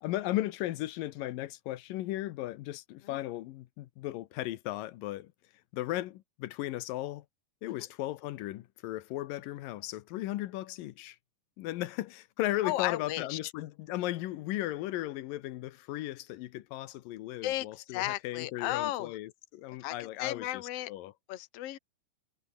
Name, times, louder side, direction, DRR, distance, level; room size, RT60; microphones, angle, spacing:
voice 1, 0.0-5.3 5.7-7.3 7.6-11.2 11.6-21.1, left 15 dB, 85° left, 2.6 m, -36 dB
voice 2, 12.6-13.4 17.4-19.1 19.8-20.9 21.3-21.8, left 15 dB, 55° left, 2.1 m, -35 dB
omnidirectional pair, 3.9 m